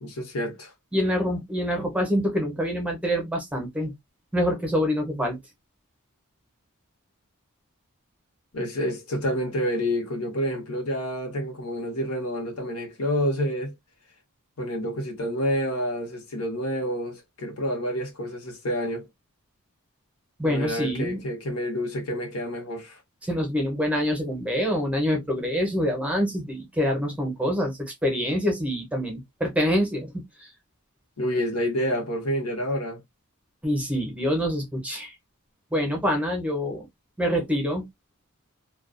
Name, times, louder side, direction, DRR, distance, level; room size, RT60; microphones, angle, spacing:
voice 1, 0.0-0.7 8.5-13.7 14.6-19.1 20.4-23.0 31.2-33.0, equal, 80° left, 0.9 m, -28 dB
voice 2, 0.9-3.9 4.3-5.4 20.4-21.2 23.2-30.5 33.6-35.1 35.7-36.9 37.2-37.9, equal, 5° right, 0.7 m, -26 dB
2.3 x 2.2 x 2.4 m
head